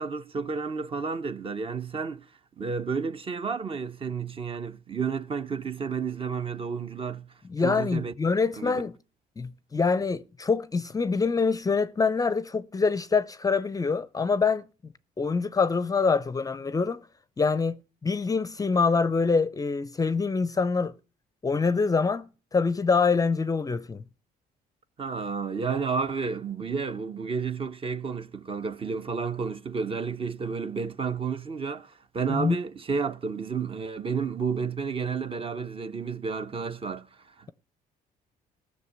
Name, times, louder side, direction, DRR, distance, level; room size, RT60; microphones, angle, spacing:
voice 1, 0.0-2.3 2.6-7.3 7.6-8.1 8.6-8.7 25.0-37.1 37.4-37.5, right 5 dB, 35° right, 0.9 m, -31 dB
voice 2, 7.5-9.0 9.4-17.0 17.4-20.9 21.4-24.0 32.3-32.6, left 4 dB, 20° left, 0.6 m, -25 dB
15.5 x 6.6 x 8.2 m
cardioid pair, 110°, 17 cm